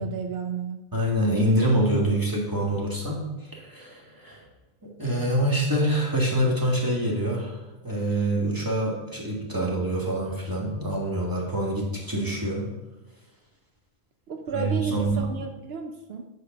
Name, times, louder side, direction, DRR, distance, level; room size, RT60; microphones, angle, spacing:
voice 1, 0.0-0.8 14.3-16.3, right 5 dB, 75° right, 5 dB, 0.9 m, -32 dB
voice 2, 0.9-3.2 3.5-4.4 4.8-12.7 14.5-15.3, right 1 dB, 20° right, -2 dB, 2.1 m, -26 dB
9.8 x 4.8 x 6.0 m, 1.0 s
omnidirectional pair, 1.0 m